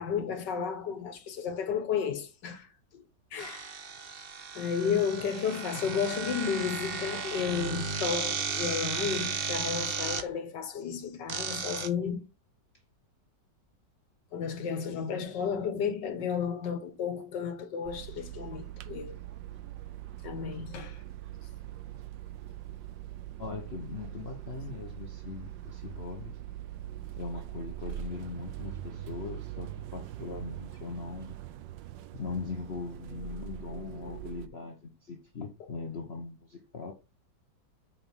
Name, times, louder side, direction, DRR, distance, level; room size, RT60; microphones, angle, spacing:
voice 1, 0.0-2.7 2.9-3.0 3.3-3.7 4.5-12.2 14.3-19.2 20.2-21.0, left 7 dB, 75° left, 1.8 m, -32 dB
sound 1, 3.4-10.2 11.3-11.9, right 5 dB, 50° right, 0.7 m, -34 dB
sound 2, 17.9-34.5, right 12 dB, 90° right, 1.3 m, -42 dB
voice 2, 23.4-26.3 27.2-31.4 32.1-36.9, left 4 dB, 40° left, 1.1 m, -40 dB
5.8 x 5.1 x 5.5 m
omnidirectional pair, 1.9 m